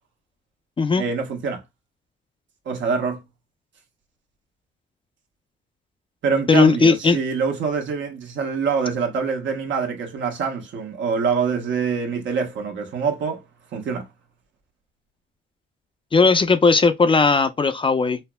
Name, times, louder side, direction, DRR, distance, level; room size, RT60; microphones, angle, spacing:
voice 1, 1.0-1.6 2.6-3.2 6.2-13.4 13.7-14.1, right 5 dB, 70° right, 1.1 m, -25 dB
voice 2, 6.5-7.2 16.1-18.2, left 4 dB, 25° left, 0.5 m, -17 dB
5.4 x 2.0 x 2.2 m
cardioid pair, 90°, 20 cm